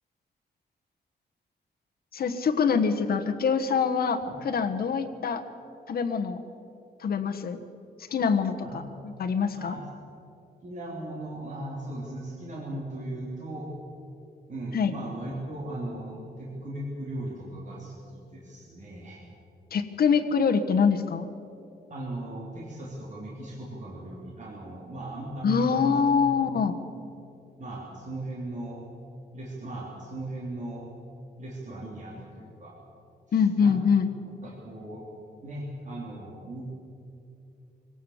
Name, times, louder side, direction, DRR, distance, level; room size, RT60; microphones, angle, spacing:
voice 1, 2.1-5.4 5.9-6.4 7.0-7.6 8.1-8.5 9.0-9.8 14.7-14.9 19.7-21.3 25.4-26.7 33.3-34.1, left 6 dB, 60° left, 5 dB, 1.3 m, -24 dB
voice 2, 9.5-9.8 10.6-13.7 14.5-19.2 21.9-26.0 26.4-26.5 26.9-27.1 27.6-28.8 29.3-30.8 31.4-32.7 33.3-33.8 34.4-35.1 35.4-36.7, right 1 dB, 45° right, -4 dB, 3.4 m, -38 dB
24.0 x 17.5 x 7.3 m, 2.6 s
wide cardioid pair, 165°, 18 cm